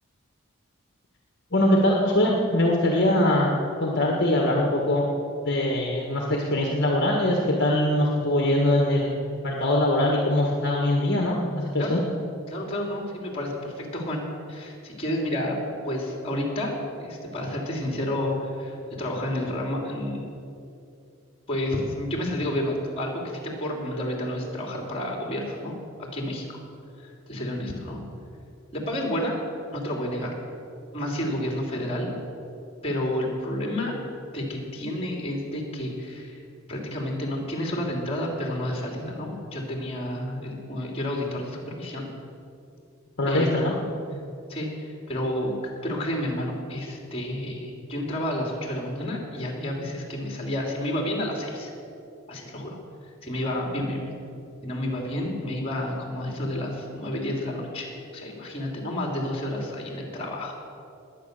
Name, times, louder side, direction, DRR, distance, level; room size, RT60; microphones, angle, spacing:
voice 1, 1.5-3.5 3.8-5.0 5.4-9.1 9.4-12.0 43.2-43.7, left 1 dB, 50° left, -1 dB, 1.6 m, -22 dB
voice 2, 12.5-14.2 14.5-15.6 15.9-20.2 21.5-25.7 26.0-26.6 27.0-28.0 28.7-29.3 29.7-30.3 30.9-32.1 32.8-33.9 34.3-36.4 36.7-42.1 43.3-43.5 44.5-45.5 45.8-51.7 52.3-52.8 53.0-54.1 54.6-60.6, left 1 dB, 25° left, 0 dB, 2.9 m, -30 dB
20.5 x 9.0 x 6.7 m, 2.6 s
head